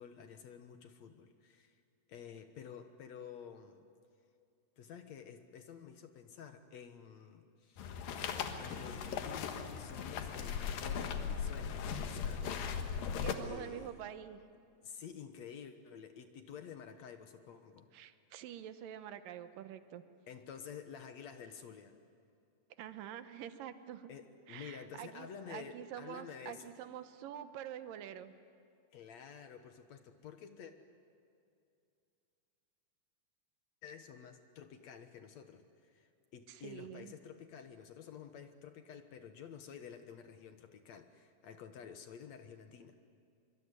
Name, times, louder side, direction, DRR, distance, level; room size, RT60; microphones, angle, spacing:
voice 1, 0.0-1.8 2.1-3.9 4.8-7.9 8.6-12.5 13.4-14.0 14.8-17.9 20.3-22.0 24.1-26.7 28.9-30.7 33.8-43.0, left 7 dB, 60° left, 8 dB, 2.2 m, -51 dB
sound 1, 7.8-13.3, left 7 dB, 85° left, 3.2 m, -38 dB
voice 2, 13.2-14.4 17.9-20.0 22.8-24.1 24.5-28.3 36.5-37.1, right 10 dB, 80° right, 11 dB, 2.7 m, -46 dB
25.0 x 24.5 x 9.7 m, 2.5 s
omnidirectional pair, 3.9 m